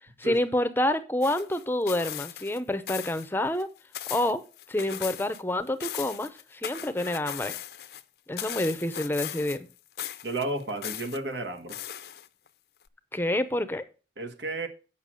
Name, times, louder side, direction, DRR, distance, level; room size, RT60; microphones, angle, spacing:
voice 1, 0.2-3.7 4.1-4.4 4.7-7.6 8.3-9.7 13.1-13.8, left 1 dB, 10° left, 0.6 m, -28 dB
sound 1, 1.2-2.6 2.9-3.3 3.6-5.4 5.7-8.0 8.4-9.7 10.0-11.2 11.7-12.5 12.9-13.0, left 11 dB, 70° left, 0.5 m, -38 dB
voice 2, 10.2-11.8 14.2-14.7, right 2 dB, 85° right, 1.6 m, -32 dB
8.3 x 5.8 x 6.3 m
head